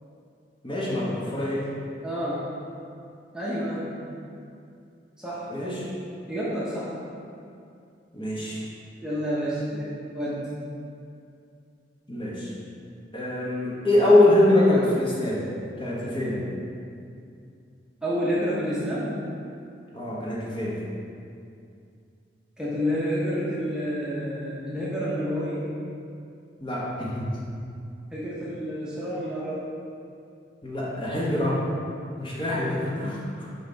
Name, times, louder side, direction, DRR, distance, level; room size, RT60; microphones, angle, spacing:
voice 1, 0.6-1.7 5.5-5.9 8.1-8.6 12.1-12.5 13.1-15.5 15.8-16.4 19.9-20.8 26.6-27.4 30.6-31.6 32.2-33.5, left 1 dB, 25° left, -7 dB, 1.3 m, -24 dB
voice 2, 2.0-2.5 3.3-4.0 5.2-5.5 6.3-6.9 9.0-10.5 18.0-19.1 22.6-25.6 28.1-29.7, equal, 5° right, -9 dB, 1.0 m, -29 dB
5.6 x 5.6 x 4.0 m, 2.5 s
head